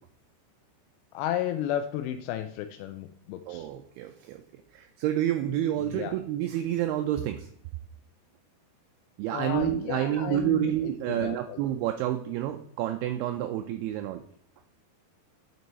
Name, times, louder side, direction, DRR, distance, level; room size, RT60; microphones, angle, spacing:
voice 1, 1.1-3.7 5.8-6.1 9.3-11.6, left 11 dB, 85° left, 7 dB, 2.2 m, -33 dB
voice 2, 3.5-4.4 4.7-7.5 9.2-14.2, right 12 dB, 85° right, 6 dB, 2.3 m, -29 dB
7.9 x 4.6 x 4.1 m, 0.67 s
omnidirectional pair, 4.9 m